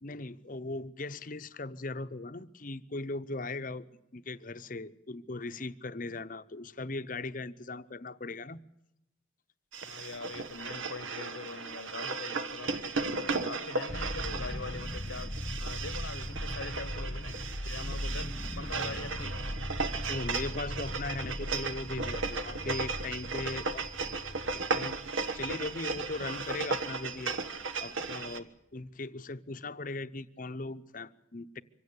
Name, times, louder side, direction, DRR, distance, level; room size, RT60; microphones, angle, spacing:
voice 1, 0.0-3.9 4.1-8.6 20.1-23.9 24.5-27.4 27.8-31.6, left 2 dB, 40° left, 0.8 m, -39 dB
sound 1, 9.7-28.4, right 4 dB, 80° right, 1.3 m, -36 dB
voice 2, 9.8-19.5, left 4 dB, 80° left, 1.1 m, -43 dB
sound 2, 13.9-27.8, left 1 dB, 15° left, 1.0 m, -39 dB
25.0 x 16.0 x 8.8 m
head